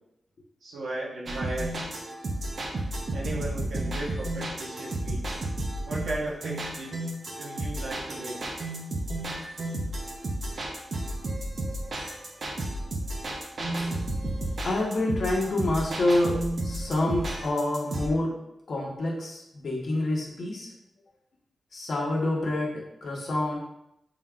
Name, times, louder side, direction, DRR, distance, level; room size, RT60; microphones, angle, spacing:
voice 1, 0.6-1.8 3.1-5.2 5.9-7.0 7.3-8.4, right 2 dB, 90° right, -4 dB, 0.9 m, -36 dB
sound 1, 1.3-18.1, right 1 dB, 60° right, 0.6 m, -32 dB
voice 2, 14.6-18.4 18.7-20.7 21.7-23.6, left 1 dB, 65° left, -2 dB, 1.0 m, -27 dB
3.7 x 3.6 x 2.4 m, 0.82 s
cardioid pair, 70°, 0 cm